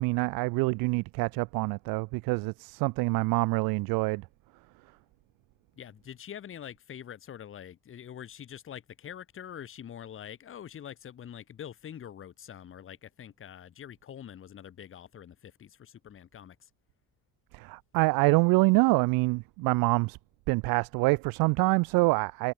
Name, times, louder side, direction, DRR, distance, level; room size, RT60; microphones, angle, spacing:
voice 1, 0.0-4.2 17.5-20.2 20.5-22.5, right 25 dB, 80° right, 0.5 m, -26 dB
voice 2, 5.8-16.7, left 9 dB, 35° left, 2.1 m, -45 dB
cardioid pair, 150°, 35 cm